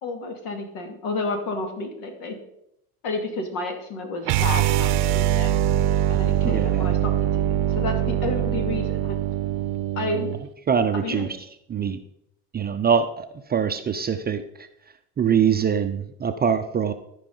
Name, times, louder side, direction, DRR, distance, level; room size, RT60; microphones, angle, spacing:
voice 1, 0.0-2.4 3.0-5.5 6.1-9.2 10.0-10.3 10.9-11.3, left 3 dB, 70° left, 5 dB, 2.2 m, -31 dB
sound 1, 4.2-10.4, right 11 dB, 60° right, 0.7 m, -23 dB
voice 2, 6.5-6.9 10.7-11.3 11.7-12.0 12.5-14.4 15.2-16.9, right 7 dB, 20° right, 7 dB, 0.5 m, -23 dB
14.0 x 5.1 x 3.8 m, 0.79 s
hypercardioid pair, 85°, 46 cm